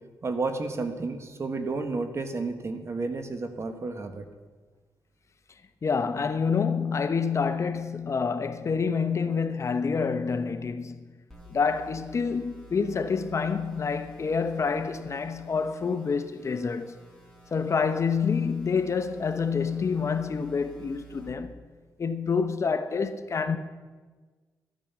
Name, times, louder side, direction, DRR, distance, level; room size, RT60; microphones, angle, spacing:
voice 1, 0.2-4.3, right 3 dB, 40° right, 1.4 m, -31 dB
voice 2, 5.8-11.0 11.5-17.0 17.5-21.5 22.0-23.6, left 5 dB, 45° left, 0.8 m, -27 dB
sound 1, 11.3-21.3, right 4 dB, 5° left, 4.6 m, -52 dB
13.0 x 9.1 x 7.0 m
cardioid pair, 90°, 7 cm